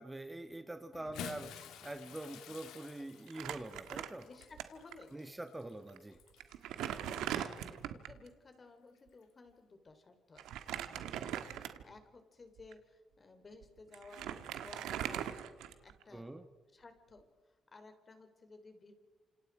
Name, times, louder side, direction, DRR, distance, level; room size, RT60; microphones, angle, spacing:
voice 1, 0.0-4.3 5.1-6.2 16.1-16.5, right 2 dB, 15° right, 8 dB, 1.3 m, -45 dB
Bathtub (filling or washing) / Splash splatter, 0.9-6.6 7.5-7.7 9.1-9.2, left 8 dB, 85° left, 2.2 m, -51 dB
Crumpling crinkling, 3.3-4.6 4.9-5.0 5.9-6.0 6.4-8.2 10.4-12.0 12.6-12.7 13.6-13.7 13.9-16.0, right 10 dB, 90° right, 1.4 m, -40 dB
voice 2, 4.2-5.3 6.9-15.5 15.8-16.3 16.7-17.3 17.7-18.9, left 3 dB, 35° left, 7 dB, 3.8 m, -56 dB
28.5 x 27.0 x 4.8 m, 1.3 s
cardioid pair, 90°, 0 cm